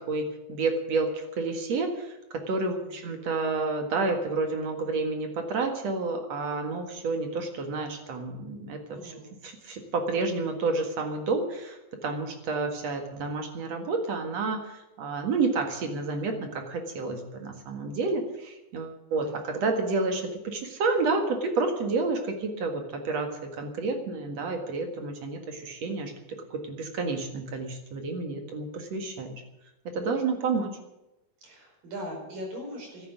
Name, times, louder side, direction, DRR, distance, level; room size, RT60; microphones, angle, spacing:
voice 1, 0.1-2.1 2.5-9.1 9.4-26.1 26.5-29.4 29.9-30.8, right 3 dB, 55° right, 4 dB, 2.6 m, -30 dB
voice 2, 2.6-3.1 8.9-9.3 19.1-19.5 31.4-33.1, equal, 70° right, 0 dB, 6.6 m, -41 dB
13.0 x 10.5 x 9.4 m, 0.94 s
omnidirectional pair, 4.1 m